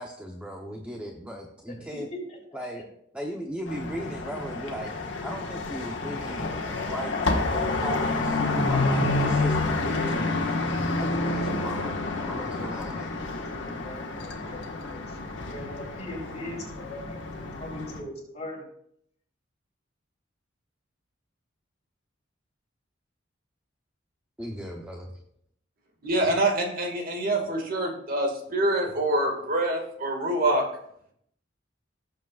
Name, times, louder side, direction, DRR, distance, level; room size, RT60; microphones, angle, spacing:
voice 1, 0.0-2.1 2.5-2.8 3.1-8.4 8.7-10.4 11.0-11.9 12.2-13.1 24.4-25.2, equal, 5° right, 1 dB, 0.8 m, -37 dB
sound 1, 3.7-18.0, left 2 dB, 70° left, 1.5 m, -29 dB
sound 2, 7.4-13.5, equal, 25° right, 1.3 m, -42 dB
voice 2, 13.4-18.6, left 1 dB, 35° left, -3 dB, 3.8 m, -40 dB
voice 3, 26.0-30.6, right 1 dB, 50° right, 2 dB, 2.0 m, -25 dB
17.5 x 7.3 x 2.4 m, 0.70 s
head